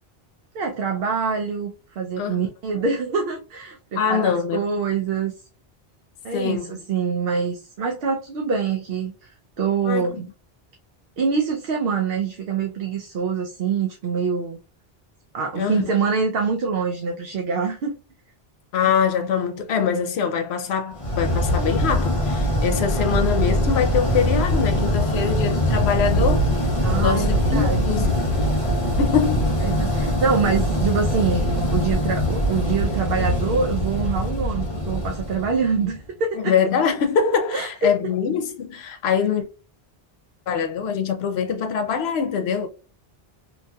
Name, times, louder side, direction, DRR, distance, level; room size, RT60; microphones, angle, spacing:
voice 1, 0.5-1.7 2.0-5.3 6.2-9.3 9.6-10.3 11.2-14.6 15.3-17.9 26.8-27.8 29.6-36.5 37.5-38.0, right 5 dB, 70° right, 0.8 m, -25 dB
voice 2, 4.0-4.6 6.3-6.7 9.8-10.3 15.6-15.9 18.7-26.5 27.0-28.1 29.0-29.6 36.4-39.5 40.5-42.7, left 7 dB, 90° left, 0.9 m, -23 dB
sound 1, 21.0-36.0, equal, 35° left, 1.0 m, -22 dB
2.8 x 2.7 x 2.2 m
omnidirectional pair, 1.0 m